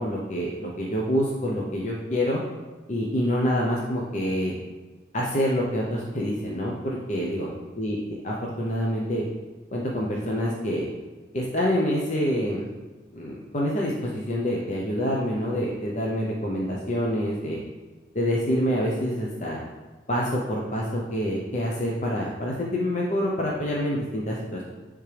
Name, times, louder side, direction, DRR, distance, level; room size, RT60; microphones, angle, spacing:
voice 1, 0.0-2.4 2.9-4.6 5.1-7.5 7.8-8.0 8.2-9.2 9.7-10.9 11.3-12.7 13.1-17.6 18.1-19.6 20.1-24.6, equal, 40° left, -3 dB, 0.7 m, -26 dB
9.8 x 3.6 x 3.3 m, 1.3 s
head